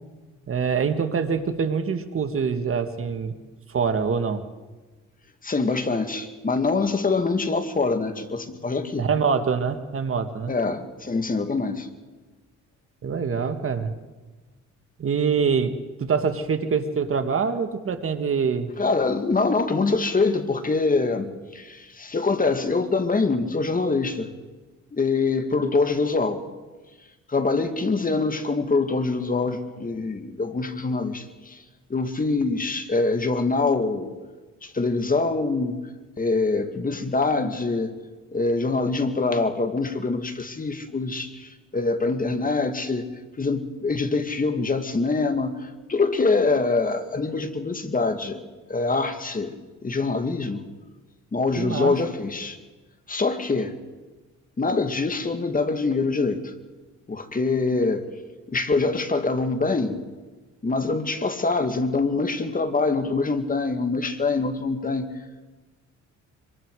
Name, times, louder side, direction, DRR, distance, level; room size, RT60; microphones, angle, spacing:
voice 1, 0.5-3.4 3.7-4.4 9.0-10.5 13.0-13.9 15.0-15.7 16.0-18.7 51.6-51.9, right 6 dB, 45° right, 8 dB, 1.8 m, -24 dB
voice 2, 5.4-9.1 10.5-11.9 18.8-24.3 24.9-26.4 27.3-31.6 31.9-34.1 34.6-35.8 36.2-37.9 38.3-43.1 43.4-48.4 48.7-49.5 49.8-50.7 51.3-52.6 53.1-53.8 54.6-56.5 57.1-58.1 58.5-60.0 60.6-65.1, left 3 dB, 30° left, 7 dB, 2.2 m, -24 dB
25.5 x 24.5 x 4.9 m, 1.2 s
cardioid pair, 90°, 30 cm